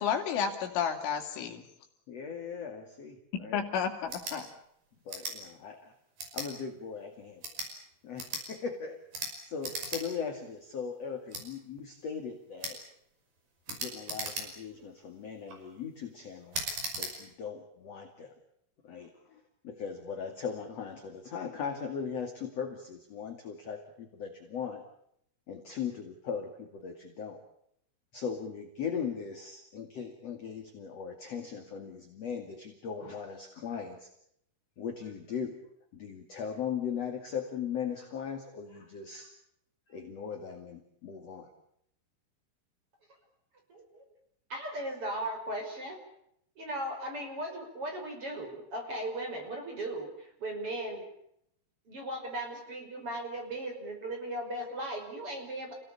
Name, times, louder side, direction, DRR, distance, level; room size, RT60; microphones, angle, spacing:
voice 1, 0.0-1.6 3.5-4.5, left 7 dB, 70° left, 4 dB, 4.8 m, -31 dB
voice 2, 2.1-3.6 5.1-5.9 6.3-7.4 8.0-12.8 13.7-16.6 17.0-18.3 18.8-24.8 25.5-27.4 28.1-34.1 34.8-35.6 35.9-39.3 39.9-41.5, left 6 dB, 45° left, 4 dB, 2.4 m, -39 dB
sound 1, 4.0-4.4 5.1-5.4 6.2-6.5 7.3-7.7 8.2-8.4 9.1-9.3 9.6-10.0 10.4-10.5 11.3-11.4 12.6-12.8 13.7-14.7 15.3-15.6 16.5-17.1, right 3 dB, 45° right, 7.1 m, -37 dB
voice 3, 43.7-44.0 44.5-46.0 46.6-51.1 51.9-55.8, right 1 dB, 25° right, 3 dB, 6.0 m, -37 dB
29.5 x 18.0 x 8.6 m, 0.74 s
omnidirectional pair, 5.9 m